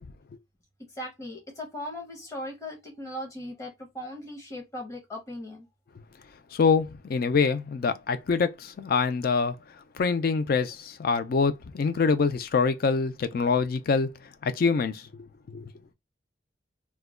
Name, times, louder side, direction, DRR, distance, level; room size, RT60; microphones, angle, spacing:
voice 1, 0.9-5.7, left 1 dB, 15° left, 0.7 m, -38 dB
voice 2, 6.5-9.6 9.9-14.1 14.4-15.0 15.5-15.7, left 5 dB, 50° left, 0.4 m, -25 dB
2.2 x 2.1 x 3.4 m
head